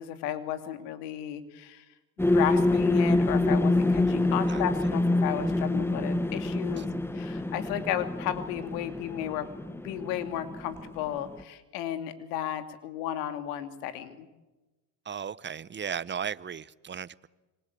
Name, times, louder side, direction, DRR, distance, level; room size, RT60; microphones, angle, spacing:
voice 1, 0.0-1.8 2.3-6.9 7.1-9.5 9.8-14.3, left 11 dB, 80° left, 2.9 m, -33 dB
sound 1, 2.2-11.4, left 2 dB, 5° left, 1.4 m, -26 dB
voice 2, 15.0-17.3, right 7 dB, 25° right, 0.9 m, -36 dB
27.0 x 24.5 x 8.5 m
supercardioid pair, 85°, 47 cm